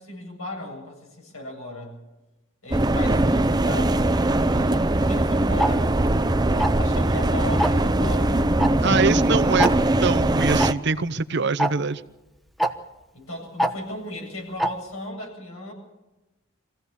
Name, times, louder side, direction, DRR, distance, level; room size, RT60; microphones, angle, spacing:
voice 1, 0.0-2.0 2.6-5.9 6.8-9.1 13.1-15.7, left 1 dB, 80° left, 1 dB, 7.9 m, -36 dB
sound 1, 2.7-10.7, right 1 dB, 20° right, 0.6 m, -21 dB
Tick-tock, 5.6-5.7 6.6-6.9 7.6-7.9 8.6-8.7 9.0-9.1 9.6-9.7 10.6-10.7 11.6-11.7 12.6-12.7 13.6-13.7 14.6-14.7, right 1 dB, ahead, 1.0 m, -22 dB
voice 2, 8.8-9.7 10.0-12.0, right 4 dB, 55° right, 13 dB, 0.8 m, -23 dB
24.5 x 16.5 x 7.1 m, 1.1 s
head